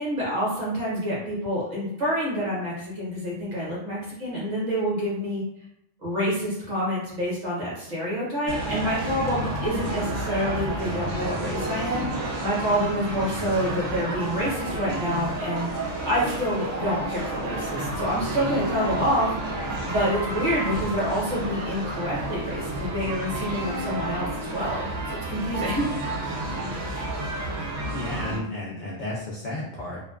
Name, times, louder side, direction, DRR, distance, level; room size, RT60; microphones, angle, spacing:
voice 1, 0.0-5.4 6.0-26.2, equal, 40° right, -7 dB, 0.8 m, -27 dB
sound 1, 8.5-28.4, right 1 dB, 70° right, 0.8 m, -30 dB
voice 2, 27.9-30.0, left 1 dB, 70° left, -4 dB, 0.4 m, -33 dB
2.4 x 2.2 x 2.3 m, 0.80 s
omnidirectional pair, 1.3 m